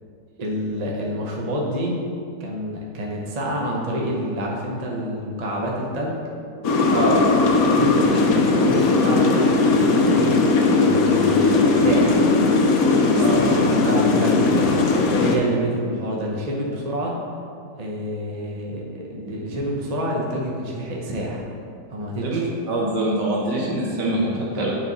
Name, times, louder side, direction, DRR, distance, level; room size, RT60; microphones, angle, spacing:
voice 1, 0.4-2.0 2.4-6.2 7.6-10.4 10.7-12.2 13.1-14.8 15.2-17.2 17.8-21.4 21.9-22.4, equal, 35° right, -2 dB, 0.7 m, -28 dB
sound 1, 6.6-15.4, left 3 dB, 65° left, 1.0 m, -18 dB
voice 2, 13.1-13.5 22.2-24.8, right 1 dB, 75° right, -4 dB, 1.9 m, -24 dB
9.5 x 3.8 x 4.0 m, 2.3 s
omnidirectional pair, 1.9 m